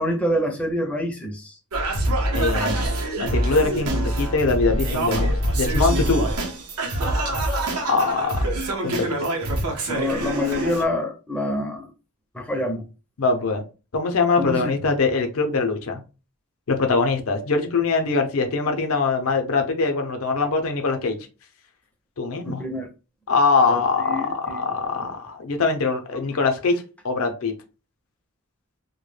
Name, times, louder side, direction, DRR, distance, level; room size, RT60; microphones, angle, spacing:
voice 1, 0.0-1.6 9.9-11.9 12.3-12.9 14.4-14.7 22.4-22.9 23.7-25.1, left 1 dB, 5° left, 2 dB, 0.4 m, -27 dB
Singing, 1.7-10.8, right 1 dB, 90° right, 0.7 m, -25 dB
voice 2, 2.3-2.8 3.2-6.3 7.9-8.6 8.8-9.3 13.2-13.6 13.9-16.0 16.7-21.2 22.2-22.6 23.3-27.5, left 4 dB, 65° left, 5 dB, 0.5 m, -23 dB
2.1 x 2.1 x 3.1 m, 0.32 s
head